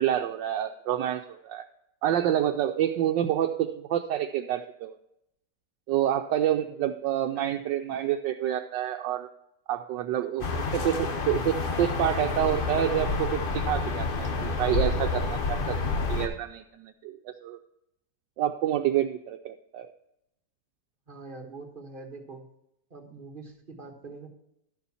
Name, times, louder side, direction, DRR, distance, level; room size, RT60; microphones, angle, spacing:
voice 1, 0.0-1.7 2.0-5.0 5.9-9.3 9.7-17.6 18.4-19.9, right 11 dB, 85° right, 4 dB, 1.3 m, -28 dB
sound 1, 10.4-16.3, left 3 dB, 40° left, 0.8 m, -29 dB
voice 2, 21.1-22.4 22.9-24.3, right 3 dB, 30° right, 1 dB, 1.6 m, -44 dB
12.5 x 6.9 x 4.2 m, 0.81 s
omnidirectional pair, 1.9 m